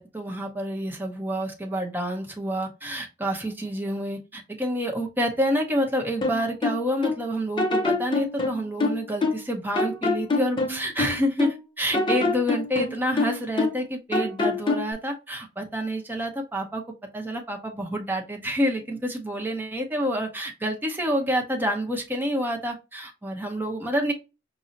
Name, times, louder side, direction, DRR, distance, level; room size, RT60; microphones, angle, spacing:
voice 1, 0.0-16.8 17.1-24.1, equal, 10° right, 2 dB, 0.7 m, -28 dB
sound 1, 6.2-7.2 7.6-9.5 9.7-11.6 11.9-13.8 14.1-14.9, left 3 dB, 25° left, 0.5 m, -25 dB
5.1 x 2.0 x 2.6 m, 0.28 s
head